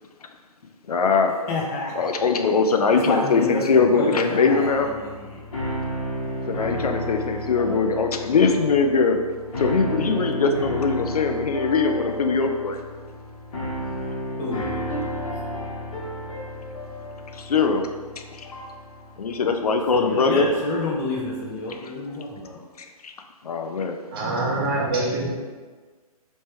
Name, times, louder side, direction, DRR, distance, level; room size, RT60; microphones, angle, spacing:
voice 1, 0.9-1.3 2.0-4.9 6.5-9.2 9.5-12.8 17.4-17.8 18.4-18.5 19.2-20.5 23.0-23.1 23.4-24.0, left 4 dB, 75° left, 5 dB, 0.4 m, -21 dB
voice 2, 1.5-2.1 2.9-5.4 14.4-14.6 19.9-22.6, left 2 dB, 25° left, -2 dB, 0.5 m, -29 dB
sound 1, 4.6-20.9, equal, 55° left, 1.1 m, -32 dB
voice 3, 24.1-25.3, right 2 dB, 40° right, -3 dB, 0.9 m, -24 dB
3.2 x 3.1 x 3.1 m, 1.4 s
figure-of-eight pair, 135°, 20 cm